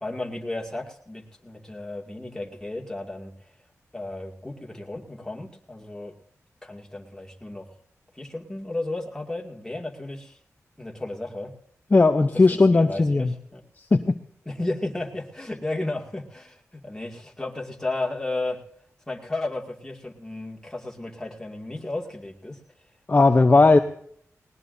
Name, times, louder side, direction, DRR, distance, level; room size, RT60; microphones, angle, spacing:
voice 1, 0.0-3.5 3.9-6.1 6.6-7.8 8.1-10.4 10.8-11.5 12.5-13.6 14.5-18.6 19.1-22.6 23.3-23.8, left 2 dB, 10° left, 1 dB, 2.3 m, -34 dB
voice 2, 11.9-13.3 13.8-14.2 23.1-23.8, left 3 dB, 30° left, 7 dB, 0.7 m, -17 dB
19.5 x 19.5 x 2.7 m, 0.63 s
wide cardioid pair, 85°, 5 cm